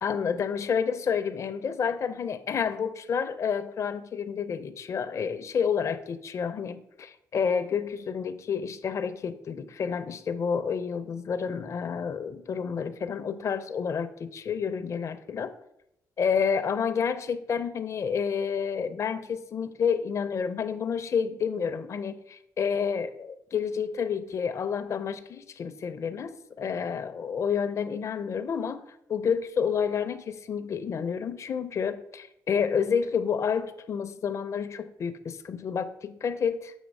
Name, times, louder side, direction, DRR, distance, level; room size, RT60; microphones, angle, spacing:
voice 1, 0.0-15.5 16.2-26.3 26.6-28.8 29.1-36.7, left 6 dB, 45° left, 9 dB, 0.4 m, -29 dB
7.1 x 3.0 x 5.2 m, 0.79 s
cardioid pair, 90°, 7 cm